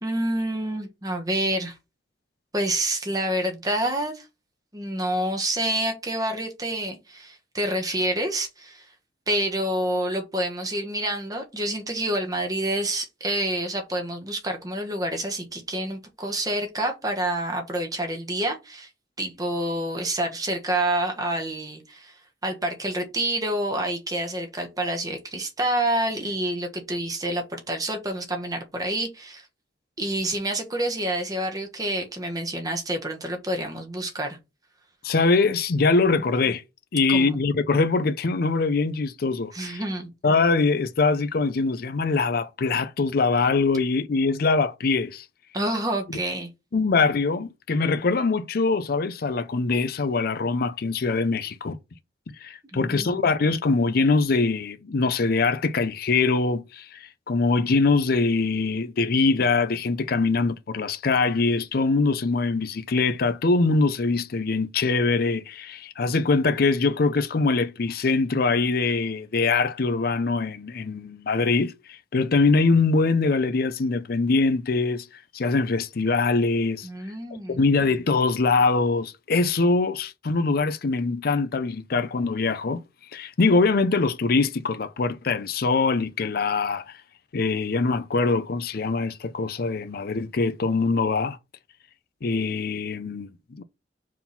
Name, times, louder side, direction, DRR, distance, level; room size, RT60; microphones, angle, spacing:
voice 1, 0.0-1.8 2.5-4.2 4.7-8.8 9.3-18.9 19.2-29.5 30.0-34.4 37.1-37.3 39.5-40.1 45.5-46.5 52.7-53.2 76.8-77.6, right 1 dB, 20° right, 1.4 m, -28 dB
voice 2, 35.0-36.6 36.9-39.8 40.2-45.3 46.7-51.8 52.4-76.9 77.5-82.8 83.1-87.0 87.3-91.4 92.2-93.6, left 3 dB, 60° left, 0.5 m, -23 dB
4.6 x 3.7 x 5.5 m
head